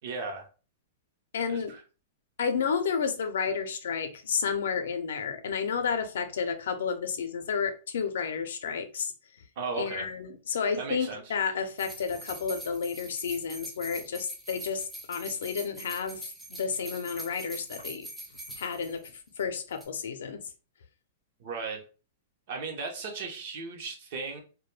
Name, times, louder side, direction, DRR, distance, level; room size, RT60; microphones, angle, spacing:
voice 1, 0.0-0.5 1.5-1.8 9.6-10.1 10.8-11.3 21.4-21.8 22.5-24.4, right 4 dB, 50° right, 0.7 m, -36 dB
voice 2, 1.3-1.7 2.4-9.1 9.8-18.1 18.6-20.4, left 6 dB, 80° left, 0.5 m, -31 dB
sound 1, 11.8-19.4 19.7-19.9, right 1 dB, 5° right, 0.4 m, -43 dB
2.2 x 2.1 x 3.1 m
supercardioid pair, 165°, 0 cm